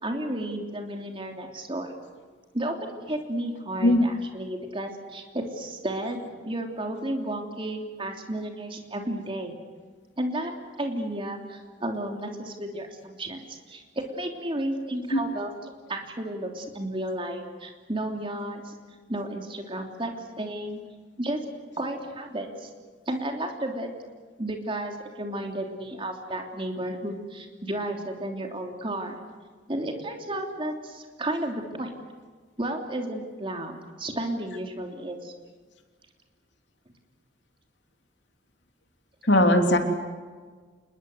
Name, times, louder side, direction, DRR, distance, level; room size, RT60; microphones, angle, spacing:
voice 1, 0.0-1.9 2.5-9.6 10.2-10.5 10.8-15.5 15.9-18.7 19.1-20.8 21.2-21.4 21.8-22.7 23.1-23.9 24.4-29.2 29.7-31.9 32.6-35.3, right 1 dB, 30° right, 3 dB, 3.1 m, -32 dB
voice 2, 39.3-39.8, left 1 dB, 70° left, 4 dB, 3.2 m, -19 dB
27.5 x 21.0 x 8.0 m, 1.5 s
head